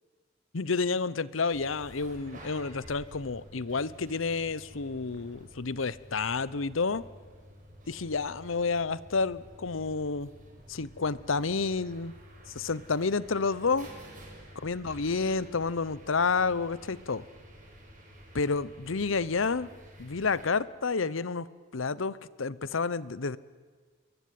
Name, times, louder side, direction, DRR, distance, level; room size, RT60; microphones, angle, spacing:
voice 1, 0.5-7.0 7.9-10.3 10.7-12.1 12.5-13.9 14.6-17.2 18.3-19.7 20.0-21.5 21.7-23.4, left 4 dB, 80° left, 18 dB, 0.8 m, -30 dB
sound 1, 1.5-20.5, equal, 40° right, 7.1 m, -51 dB
27.5 x 22.5 x 9.4 m, 1.5 s
head